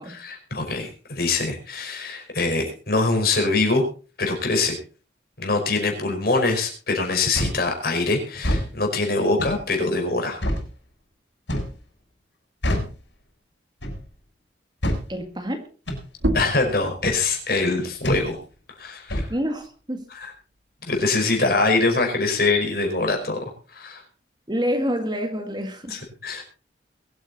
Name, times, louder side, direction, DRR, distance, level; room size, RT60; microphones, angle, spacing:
voice 1, 0.2-3.8 4.2-4.8 5.4-10.4 16.3-18.4 18.8-19.3 20.2-20.3 20.8-23.4 23.7-24.0 25.9-26.4, left 3 dB, 55° left, 2 dB, 5.1 m, -23 dB
sound 1, 7.3-7.6 8.3-8.7 9.4-9.6 10.4-10.7 11.5-11.8 12.6-12.9 13.8-14.0 14.8-15.0 15.9-16.0 17.0-17.2 18.0-18.3 19.1-19.3, equal, 85° left, 6.7 m, -25 dB
voice 2, 15.1-15.6 19.3-20.1 24.5-26.0, equal, 25° right, 6 dB, 1.8 m, -27 dB
sound 2, 16.1-21.3 21.7-23.5, right 1 dB, 85° right, 2.0 m, -34 dB
22.5 x 9.1 x 4.1 m, 0.37 s
head